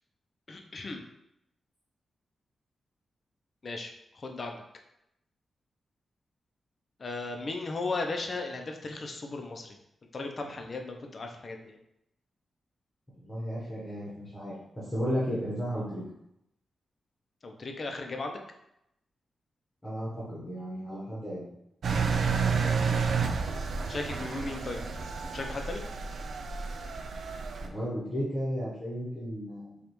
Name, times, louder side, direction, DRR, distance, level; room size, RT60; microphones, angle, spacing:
voice 1, 0.5-1.0 3.6-4.6 7.0-9.8 10.1-11.8 17.4-18.4 23.9-24.8 25.3-25.8, left 3 dB, 40° left, 3 dB, 0.5 m, -36 dB
voice 2, 13.1-16.0 19.8-21.5 27.6-29.8, equal, 15° left, -7 dB, 1.0 m, -34 dB
Engine, 21.8-27.7, right 5 dB, 65° right, 0.4 m, -30 dB
5.2 x 2.4 x 3.0 m, 0.82 s
wide cardioid pair, 140°, 0 cm